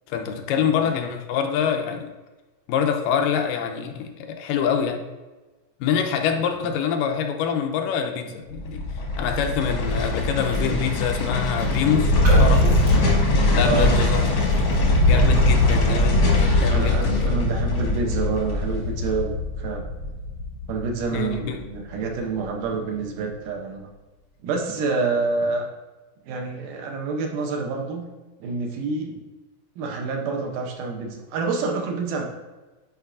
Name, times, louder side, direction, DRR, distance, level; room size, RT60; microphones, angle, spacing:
voice 1, 0.1-2.1 2.7-5.0 5.8-8.8 9.2-12.8 13.5-14.2 15.0-17.3 21.1-21.6, left 7 dB, 85° left, 4 dB, 2.3 m, -25 dB
sound 1, 8.5-21.7 22.0-22.1, left 1 dB, 60° left, 1.3 m, -21 dB
Raindrop, 10.4-10.7 11.0-11.1 11.5-15.0 15.5-15.7, right 1 dB, 45° right, 1.7 m, -35 dB
voice 2, 13.6-14.0 16.7-19.9 20.7-23.9 24.4-25.7 26.3-28.0 28.4-29.2 29.8-32.2, right 4 dB, 75° right, 2 dB, 2.3 m, -27 dB
9.5 x 4.6 x 2.5 m, 1.2 s
omnidirectional pair, 3.9 m